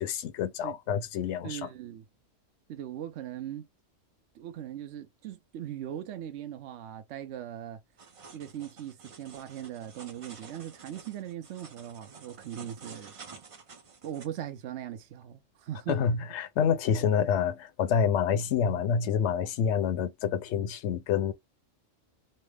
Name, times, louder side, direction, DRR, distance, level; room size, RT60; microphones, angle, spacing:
voice 1, 0.0-1.7 15.9-21.3, left 7 dB, 70° left, 0.8 m, -27 dB
voice 2, 1.4-2.0 2.7-3.7 4.3-7.8 8.3-13.1 14.0-16.0, right 11 dB, 65° right, 0.9 m, -39 dB
sound 1, 8.0-14.3, right 5 dB, 45° right, 0.4 m, -50 dB
3.2 x 2.0 x 3.2 m
omnidirectional pair, 1.3 m